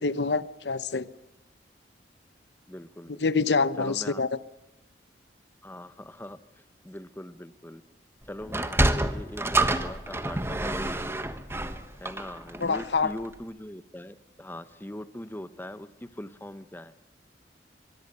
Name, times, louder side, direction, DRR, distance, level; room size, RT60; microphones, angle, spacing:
voice 1, 0.0-1.1 3.2-4.3 12.6-13.1, left 4 dB, 70° left, 16 dB, 0.9 m, -26 dB
voice 2, 2.7-3.2 3.8-4.2 5.6-6.4 6.8-7.8 8.3-11.4 12.0-16.9, left 1 dB, 10° left, 13 dB, 1.0 m, -41 dB
Sliding door, 8.4-13.0, right 1 dB, 15° right, 1.3 m, -28 dB
24.5 x 22.5 x 6.8 m, 0.97 s
head